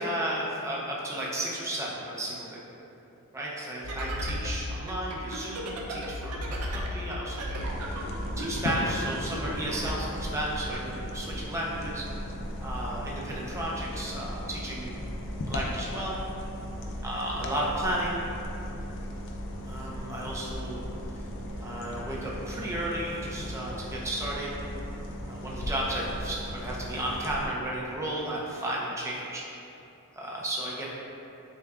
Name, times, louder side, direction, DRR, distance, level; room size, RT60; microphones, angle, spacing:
voice 1, 0.0-2.6 3.3-12.1 12.6-15.0 15.5-16.2 17.0-18.3 19.6-20.8 21.6-24.5 25.3-29.7 30.1-30.9, right 1 dB, 15° right, -5 dB, 0.5 m, -33 dB
sound 1, 3.8-10.0, equal, 75° right, 0.5 m, -35 dB
sound 2, 7.6-27.5, equal, 55° left, 0.4 m, -37 dB
6.2 x 2.3 x 2.3 m, 2.8 s
head